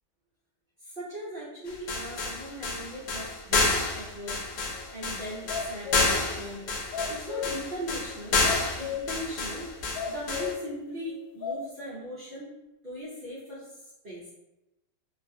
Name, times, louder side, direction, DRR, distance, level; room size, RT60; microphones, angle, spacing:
voice 1, 0.8-4.5 4.9-6.7 7.1-8.5 8.8-9.7 10.1-12.5 12.8-14.3, equal, 75° right, -10 dB, 0.4 m, -39 dB
sound 1, 1.7-10.5, left 3 dB, 70° left, 1.1 m, -29 dB
sound 2, 4.7-4.8 5.3-6.2 6.6-7.6 8.1-8.2 8.4-9.1 9.6-9.7 9.9-10.6 11.1-11.6, left 8 dB, 90° left, 1.4 m, -34 dB
3.0 x 2.4 x 2.6 m, 0.97 s
omnidirectional pair, 2.0 m